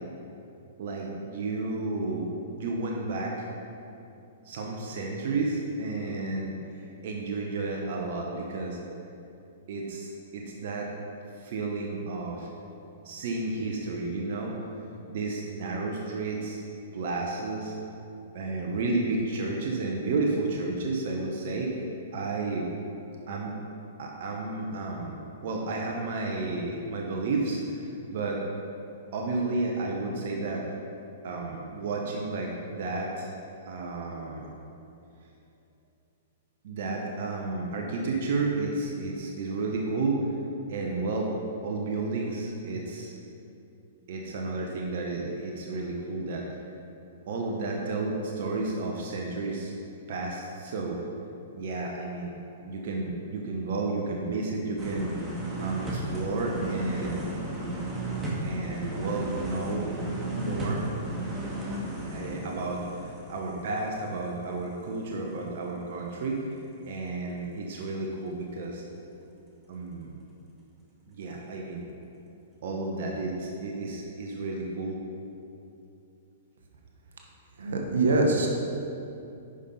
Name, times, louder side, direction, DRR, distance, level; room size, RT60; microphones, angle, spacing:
voice 1, 0.8-3.5 4.4-8.8 9.7-10.9 11.3-12.5 13.0-14.5 15.1-16.6 16.9-17.8 18.3-21.8 22.1-22.7 23.3-23.5 24.0-28.4 29.1-30.7 31.2-33.3 33.7-34.5 36.6-40.3 40.7-41.3 41.6-43.1 44.1-46.5 47.3-49.7 50.1-51.0 51.5-52.3 52.6-57.3 58.4-59.9 60.3-60.8 62.1-66.5 66.8-68.8 69.7-70.1 71.1-71.9 72.6-75.0, right 3 dB, 60° right, 0 dB, 1.0 m, -32 dB
sound 1, 54.8-64.6 64.9-65.0, right 1 dB, 15° right, 1.8 m, -34 dB
voice 2, 77.6-78.5, right 2 dB, 80° right, 1 dB, 1.2 m, -23 dB
10.0 x 5.4 x 4.3 m, 2.7 s
hypercardioid pair, 125°, 0 cm